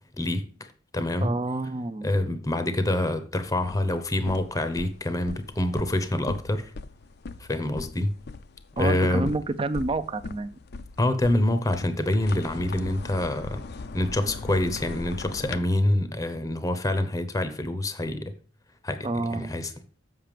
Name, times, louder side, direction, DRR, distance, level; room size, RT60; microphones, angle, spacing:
voice 1, 0.2-1.3 2.0-6.7 7.4-8.1 8.8-9.3 11.0-13.6 13.9-18.3 18.8-19.7, left 1 dB, 15° left, 0.7 m, -26 dB
voice 2, 1.2-2.3 8.8-10.5 19.0-19.7, right 2 dB, 25° right, 0.5 m, -29 dB
sound 1, 3.4-15.6, left 3 dB, 55° left, 0.5 m, -40 dB
7.4 x 5.7 x 5.1 m
head